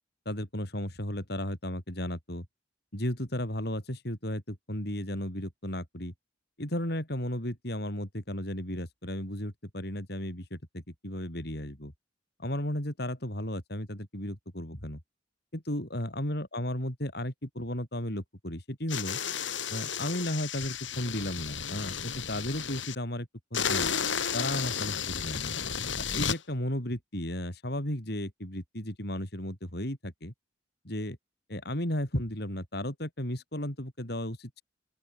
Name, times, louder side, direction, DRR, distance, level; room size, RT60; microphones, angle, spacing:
voice 1, 0.3-2.5 2.9-6.1 6.6-11.9 12.4-15.0 15.5-19.2 19.7-23.9 24.3-25.5 26.0-30.3 30.8-31.2 31.5-34.6, left 1 dB, 60° left, 5.3 m, -34 dB
sound 1, 18.9-22.9 23.5-26.4, left 7 dB, 85° left, 7.0 m, -33 dB
open air
head